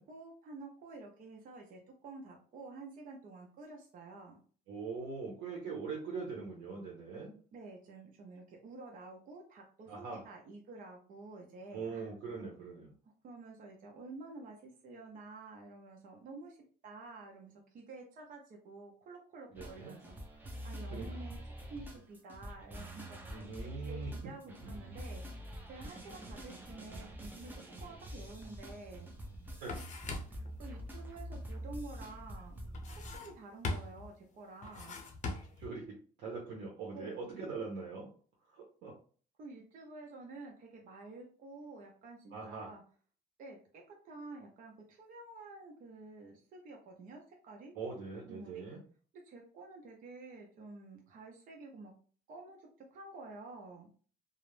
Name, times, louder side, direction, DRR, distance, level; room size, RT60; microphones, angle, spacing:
voice 1, 0.0-4.4 7.5-12.1 12.4-12.5 13.2-16.6 16.8-21.4 21.7-25.2 25.7-27.5 27.8-29.2 30.3-32.6 33.1-35.1 36.9-37.2 39.4-42.8 43.4-47.7 48.3-48.7 49.1-51.9 52.3-53.9, right 3 dB, 55° right, 1 dB, 0.6 m, -50 dB
voice 2, 4.7-7.3 9.9-10.2 11.7-12.9 19.5-19.9 20.9-21.1 23.3-24.1 24.6-24.7 29.6-29.8 35.6-38.1 38.5-38.9 42.3-42.7 47.7-48.8, right 4 dB, 85° right, -3 dB, 0.7 m, -42 dB
sound 1, 19.5-33.2, equal, 10° right, 0.6 m, -45 dB
sound 2, 28.8-28.9 29.3-30.5 32.7-33.4 33.6-34.1 34.6-35.7, left 3 dB, 45° left, 0.6 m, -40 dB
2.4 x 2.0 x 3.1 m, 0.42 s
cardioid pair, 110°, 17 cm